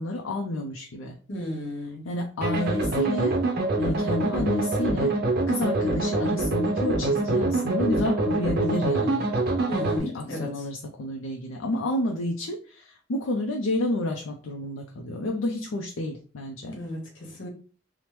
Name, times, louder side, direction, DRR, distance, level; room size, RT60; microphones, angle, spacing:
voice 1, 0.0-1.2 2.0-3.4 3.8-5.1 5.5-9.3 10.0-16.8, left 1 dB, 80° left, 2 dB, 0.4 m, -30 dB
voice 2, 1.3-2.0 9.7-10.7 16.6-17.5, left 1 dB, 65° left, 1 dB, 1.0 m, -34 dB
sound 1, 2.4-10.0, right 2 dB, 50° right, 0.5 m, -25 dB
3.0 x 2.0 x 3.1 m, 0.39 s
head